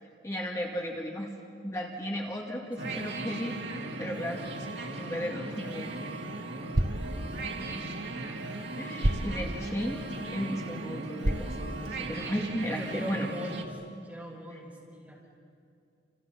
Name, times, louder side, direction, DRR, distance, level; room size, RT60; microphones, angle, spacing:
voice 1, 0.2-1.3 1.6-3.6 4.0-4.4 5.0-5.9 8.8-10.0 10.3-13.3 14.5-14.6, equal, 15° left, -1 dB, 2.3 m, -34 dB
sound 1, 2.8-13.6, right 2 dB, 85° right, 2.1 m, -38 dB
sound 2, 5.5-12.4, right 1 dB, 50° right, 1.2 m, -35 dB
voice 2, 7.5-7.9 12.8-13.7 14.0-15.2, equal, 5° right, -4 dB, 6.2 m, -41 dB
29.0 x 28.5 x 5.8 m, 2.5 s
head